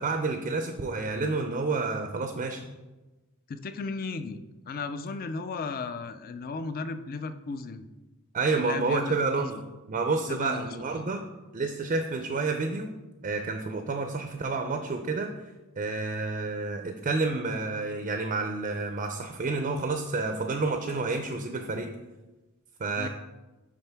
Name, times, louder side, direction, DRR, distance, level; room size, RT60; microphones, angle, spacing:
voice 1, 0.0-2.6 8.3-9.6 9.9-11.2 11.5-12.9 13.2-15.3 15.8-21.9 22.8-23.1, right 3 dB, 35° right, 5 dB, 0.4 m, -29 dB
voice 2, 3.5-7.9 8.5-9.5 10.3-11.1 23.0-23.1, left 4 dB, 40° left, 11 dB, 0.4 m, -35 dB
9.9 x 3.8 x 3.4 m, 1.1 s
head